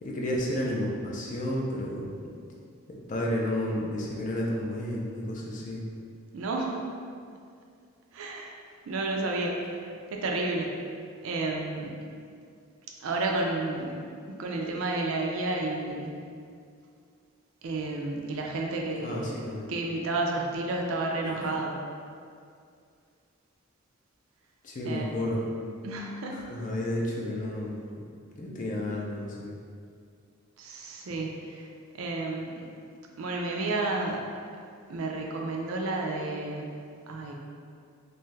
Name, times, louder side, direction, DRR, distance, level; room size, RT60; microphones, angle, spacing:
voice 1, 0.0-2.1 2.9-5.8 19.0-19.7 21.2-21.5 24.6-25.4 26.3-27.8 28.4-29.5, left 1 dB, 35° left, -3 dB, 0.4 m, -31 dB
voice 2, 6.3-6.8 8.1-8.5 8.9-9.8 10.1-10.8 11.2-11.9 13.0-14.0 14.3-16.1 17.6-19.3 19.7-21.8 24.9-25.1 25.8-26.4 30.6-31.7 32.0-32.6 33.2-34.2 34.9-36.8 37.1-37.4, right 2 dB, 75° right, 0 dB, 0.4 m, -31 dB
2.5 x 2.3 x 3.1 m, 2.3 s
head